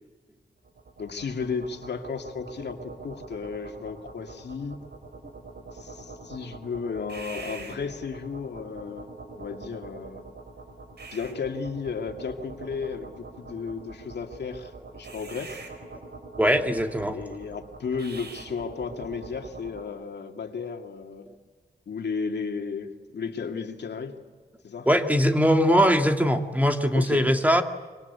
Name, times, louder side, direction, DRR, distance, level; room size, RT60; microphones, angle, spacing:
sound 1, 0.6-19.9, right 3 dB, 70° right, 5.0 m, -44 dB
voice 1, 1.0-4.8 5.7-9.1 9.4-10.2 11.1-15.6 17.1-21.3 21.9-24.2 24.6-24.9 26.9-27.3, left 5 dB, 75° left, 5 dB, 2.4 m, -34 dB
voice 2, 16.4-17.2 24.9-27.6, equal, 10° right, 5 dB, 2.1 m, -21 dB
26.0 x 25.0 x 8.3 m, 1.4 s
wide cardioid pair, 100°, 18 cm